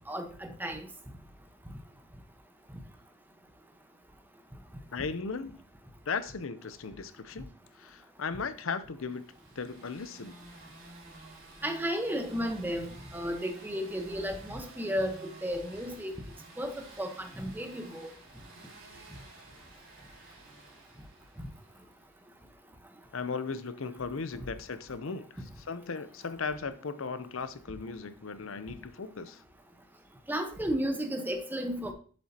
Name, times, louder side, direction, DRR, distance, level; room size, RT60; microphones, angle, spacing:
voice 1, 0.1-0.9 11.6-16.2 16.6-18.1 30.3-31.9, equal, 10° right, 1.1 m, -33 dB
voice 2, 4.9-5.6 6.1-7.5 7.8-9.3 9.6-10.4 23.1-29.4, left 5 dB, 75° left, 0.7 m, -37 dB
sound 1, 9.1-22.0, right 2 dB, 90° right, 3.3 m, -52 dB
7.7 x 7.5 x 2.9 m
head